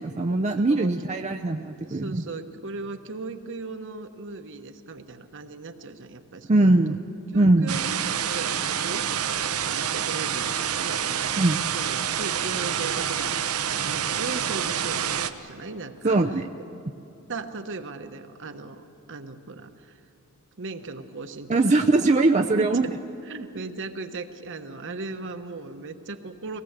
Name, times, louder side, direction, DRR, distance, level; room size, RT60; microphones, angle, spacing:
voice 1, 0.0-2.2 6.5-7.0 7.3-7.8 11.4-11.6 16.0-16.4 21.5-22.8, right 2 dB, 30° right, 4 dB, 0.6 m, -21 dB
voice 2, 0.6-0.9 1.8-6.8 7.3-11.4 11.7-16.2 17.3-20.0 20.6-21.6 22.4-22.7 23.3-26.6, right 3 dB, 60° right, 7 dB, 1.2 m, -37 dB
sound 1, 7.7-15.3, right 8 dB, 75° right, 0.9 m, -27 dB
22.5 x 18.0 x 8.1 m, 2.7 s
head